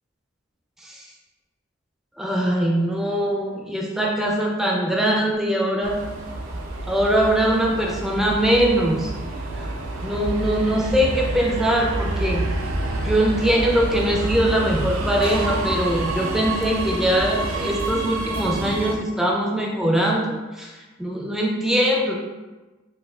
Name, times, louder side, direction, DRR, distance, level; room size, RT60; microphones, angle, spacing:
voice 1, 2.2-6.0 6.9-9.1 9.5-9.7 10.0-12.5 13.0-20.7 21.0-22.2, right 1 dB, ahead, -2 dB, 0.4 m, -22 dB
Subway metro underground, 5.8-19.0, right 2 dB, 85° right, 0.4 m, -28 dB
4.6 x 2.3 x 2.3 m, 1.2 s
head